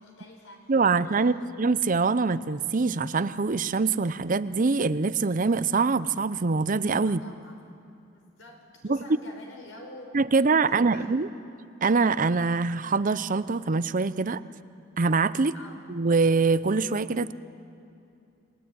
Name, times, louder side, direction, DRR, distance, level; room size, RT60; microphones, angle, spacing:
voice 1, 0.0-1.5 7.0-7.6 8.1-11.1 15.5-15.9, left 1 dB, 80° left, 3 dB, 5.0 m, -47 dB
voice 2, 0.7-1.3 1.6-7.2 8.9-9.0 10.1-11.3 11.8-14.4 15.0-15.5 15.9-17.3, right 4 dB, 45° right, 15 dB, 0.6 m, -24 dB
29.5 x 20.0 x 9.5 m, 2.6 s
head